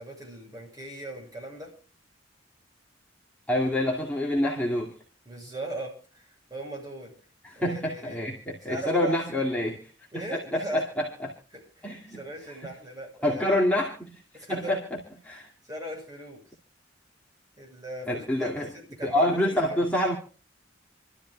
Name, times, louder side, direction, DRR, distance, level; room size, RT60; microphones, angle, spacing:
voice 1, 0.0-1.7 5.2-7.1 7.5-8.2 8.7-9.2 10.1-10.9 11.5-13.5 14.3-14.8 15.6-16.4 17.6-18.5 18.7-19.8, right 1 dB, 20° right, -1 dB, 6.7 m, -39 dB
voice 2, 3.5-5.0 7.4-11.3 11.8-12.2 12.5-12.6 13.2-15.0 15.2-15.5 18.1-18.7 19.0-20.1, left 1 dB, 10° left, -4 dB, 2.4 m, -27 dB
28.0 x 13.0 x 2.3 m, 0.37 s
head